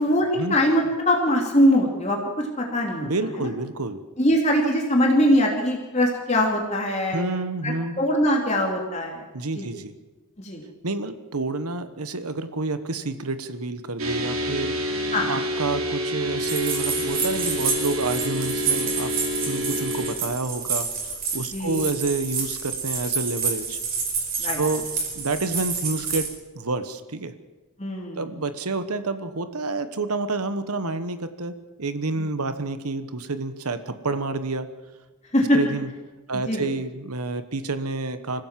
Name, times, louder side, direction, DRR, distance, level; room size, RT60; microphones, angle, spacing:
voice 1, 0.0-2.2 2.6-3.1 3.3-3.5 4.2-7.2 7.6-9.3 9.5-9.7 10.4-10.6 15.1-15.3 21.5-21.9 24.4-24.6 27.8-28.3 32.2-32.3 35.3-35.8 36.3-36.7, equal, 30° left, 0 dB, 2.9 m, -22 dB
voice 2, 3.0-4.0 7.1-8.0 9.3-9.9 10.8-14.7 15.3-19.1 19.5-23.8 24.4-24.8 25.1-26.3 26.5-27.3 28.1-34.7 35.5-35.9 36.3-38.4, right 3 dB, 90° right, 11 dB, 1.3 m, -29 dB
sound 1, 14.0-20.1, equal, 70° right, 3.1 m, -28 dB
sound 2, 16.4-26.3, right 5 dB, 40° right, 5.2 m, -29 dB
25.5 x 16.0 x 7.5 m, 1.2 s
head